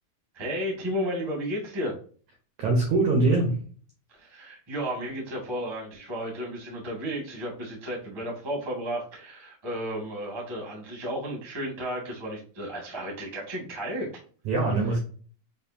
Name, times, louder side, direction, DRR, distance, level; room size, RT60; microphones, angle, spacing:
voice 1, 0.3-2.0 4.1-14.1, equal, 40° right, -2 dB, 0.3 m, -33 dB
voice 2, 2.6-3.6 14.4-15.0, right 3 dB, 80° right, 1 dB, 1.6 m, -22 dB
7.3 x 2.5 x 2.7 m, 0.42 s
omnidirectional pair, 4.8 m